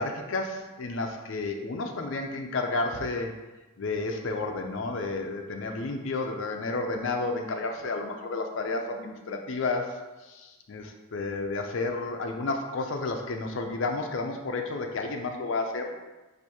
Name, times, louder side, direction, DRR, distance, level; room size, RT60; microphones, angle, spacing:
voice 1, 0.0-3.3 3.8-10.0 10.3-15.9, left 3 dB, 60° left, 4 dB, 0.5 m, -31 dB
4.7 x 2.6 x 4.2 m, 1.2 s
head